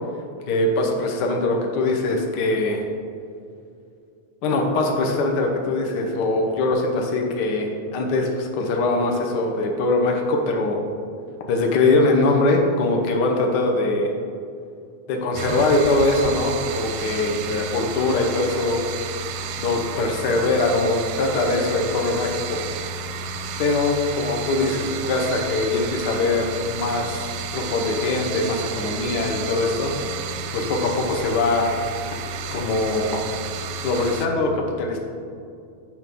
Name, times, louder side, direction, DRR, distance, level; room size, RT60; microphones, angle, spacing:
voice 1, 0.5-2.8 4.4-10.8 11.5-14.1 15.1-18.8 19.6-22.6 23.6-29.9 30.5-31.7 32.5-33.2 33.8-35.0, left 2 dB, 85° left, 1 dB, 0.9 m, -22 dB
sound 1, 15.3-34.3, right 4 dB, 80° right, 1.5 m, -31 dB
8.2 x 4.6 x 6.9 m, 2.4 s
omnidirectional pair, 3.3 m